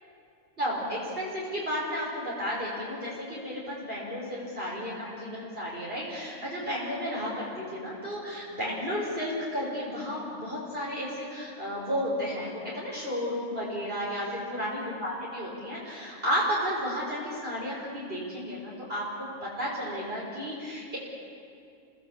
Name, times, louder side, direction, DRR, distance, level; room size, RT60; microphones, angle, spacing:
voice 1, 0.6-21.0, equal, 50° right, -6 dB, 5.0 m, -33 dB
29.5 x 19.0 x 7.1 m, 2.5 s
omnidirectional pair, 1.3 m